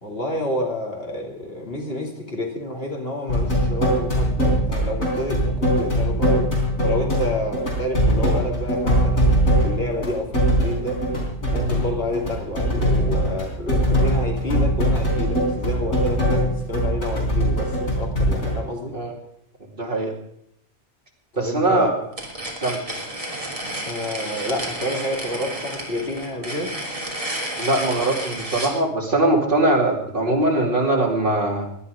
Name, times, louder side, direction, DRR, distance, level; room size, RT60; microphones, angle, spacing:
voice 1, 0.0-6.6 6.8-9.4 9.6-11.0 11.5-19.0 21.3-22.0 23.8-26.8, left 1 dB, 55° left, 0 dB, 3.2 m, -29 dB
sound 1, 3.3-18.6, equal, 75° left, 4.2 m, -21 dB
voice 2, 19.8-20.1 21.4-22.0 22.6-22.8 27.6-31.7, right 2 dB, 50° right, 0 dB, 2.9 m, -21 dB
sound 2, 22.1-28.8, right 1 dB, 30° right, 3.1 m, -31 dB
18.0 x 11.5 x 5.1 m, 0.70 s
omnidirectional pair, 1.2 m